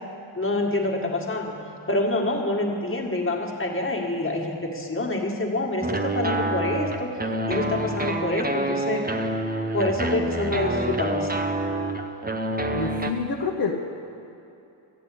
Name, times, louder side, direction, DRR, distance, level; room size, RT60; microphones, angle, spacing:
voice 1, 0.4-1.6 1.9-7.1 7.5-9.0 9.7-11.3, left 2 dB, 25° left, -1 dB, 1.9 m, -26 dB
sound 1, 5.8-13.1, right 1 dB, 20° right, 0.7 m, -27 dB
voice 2, 12.7-13.7, left 4 dB, 50° left, -2 dB, 1.1 m, -27 dB
14.0 x 9.8 x 8.5 m, 2.9 s
wide cardioid pair, 145°, 48 cm